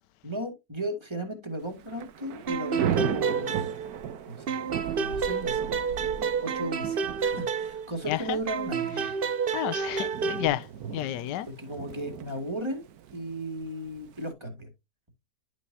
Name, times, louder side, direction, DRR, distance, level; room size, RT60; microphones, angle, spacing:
voice 1, 0.2-3.7 4.3-4.5 4.9-5.7 6.4-9.1 10.3-10.5 11.5-14.7, right 1 dB, 15° right, 2.1 m, -35 dB
Thunder / Rain, 1.7-14.3, right 9 dB, 65° right, 1.3 m, -37 dB
sound 1, 2.5-4.2 4.5-8.1 8.5-10.5, right 6 dB, 50° right, 0.7 m, -30 dB
voice 2, 8.1-8.4 9.5-10.7 10.9-11.5, left 13 dB, 85° left, 1.2 m, -30 dB
11.0 x 6.1 x 2.7 m
omnidirectional pair, 1.8 m